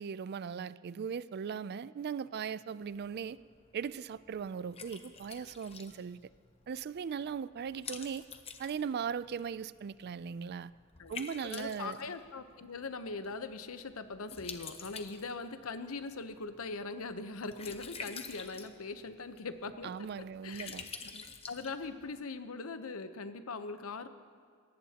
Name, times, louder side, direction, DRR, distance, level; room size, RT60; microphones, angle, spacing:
voice 1, 0.0-3.4 3.7-6.3 6.7-8.2 8.6-10.7 11.1-12.1 19.8-20.9, right 6 dB, 50° right, 17 dB, 0.3 m, -38 dB
Liquid, 2.8-22.2, left 5 dB, 30° left, 0.9 m, -50 dB
voice 2, 11.0-19.9 20.4-20.8 21.1-24.1, left 3 dB, 80° left, 10 dB, 0.9 m, -41 dB
22.5 x 18.5 x 2.9 m, 2.1 s
head